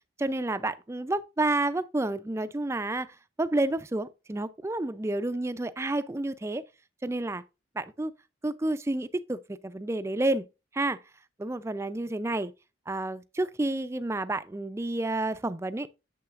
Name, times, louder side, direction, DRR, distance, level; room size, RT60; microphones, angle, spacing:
voice 1, 0.2-6.6 7.0-7.4 7.8-8.1 8.4-10.5 10.7-11.0 11.4-12.5 12.9-15.9, right 2 dB, 15° right, 0.3 m, -30 dB
8.7 x 6.9 x 2.4 m
head